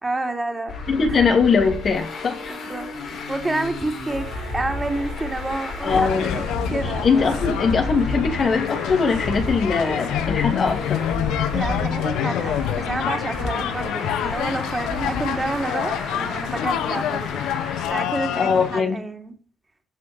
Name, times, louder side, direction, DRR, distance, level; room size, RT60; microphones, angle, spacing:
voice 1, 0.0-0.7 2.5-2.9 3.3-4.3 4.5-6.4 6.7-7.1 11.5-17.4 17.9-19.3, right 2 dB, 20° right, 5 dB, 3.3 m, -29 dB
Traffic noise roadway noise, 0.7-17.9, left 3 dB, 60° left, 5.3 m, -32 dB
voice 2, 0.9-2.6 5.8-6.4 6.8-11.0 18.4-19.0, left 5 dB, 45° left, 5 dB, 2.9 m, -21 dB
sound 1, 4.1-16.8, right 7 dB, 85° right, 3.1 m, -40 dB
sound 2, 5.9-18.8, left 10 dB, 90° left, 1.2 m, -27 dB
15.0 x 5.6 x 9.0 m, 0.38 s
cardioid pair, 90°, 0 cm